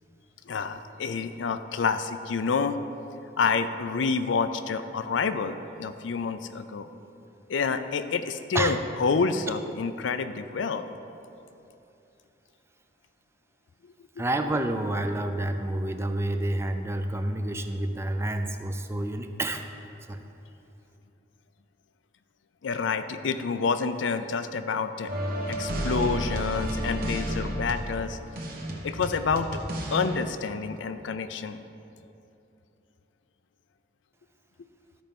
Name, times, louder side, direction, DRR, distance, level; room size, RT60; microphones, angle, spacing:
voice 1, 0.5-2.8 3.4-6.9 7.5-10.9 22.6-25.1 25.5-28.2 28.8-29.6 29.9-31.6, left 5 dB, 90° left, 10 dB, 0.5 m, -28 dB
voice 2, 14.2-19.7 20.1-20.2, right 1 dB, 15° right, 7 dB, 0.4 m, -29 dB
sound 1, 25.1-30.2, equal, 55° right, 1.1 m, -31 dB
13.0 x 4.4 x 5.3 m, 2.8 s
head